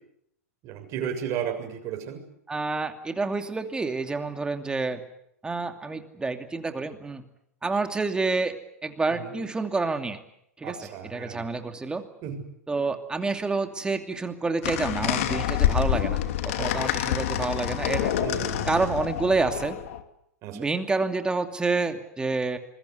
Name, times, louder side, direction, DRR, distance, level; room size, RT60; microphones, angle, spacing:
voice 1, 0.6-2.2 9.1-9.3 10.6-11.5 12.2-12.4 16.6-16.7 18.2-18.7 20.4-20.7, right 8 dB, 40° right, 5 dB, 7.0 m, -34 dB
voice 2, 2.5-5.0 5.4-7.2 7.6-8.6 8.8-10.2 10.6-12.1 12.7-18.1 18.7-19.8 20.5-22.6, right 3 dB, 10° right, 7 dB, 2.7 m, -28 dB
sound 1, 14.6-20.0, left 11 dB, 60° left, 2.8 m, -27 dB
27.0 x 21.5 x 8.2 m, 0.74 s
hypercardioid pair, 110°, 8 cm